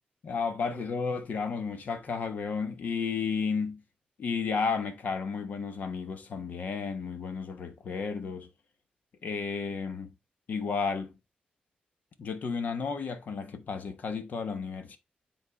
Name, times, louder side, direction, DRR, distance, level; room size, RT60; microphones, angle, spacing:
voice 1, 0.2-3.8 4.2-8.5 9.2-10.1 10.5-11.1 12.2-15.0, left 5 dB, 65° left, 1.4 m, -32 dB
9.7 x 4.0 x 3.6 m
wide cardioid pair, 140°, 3 cm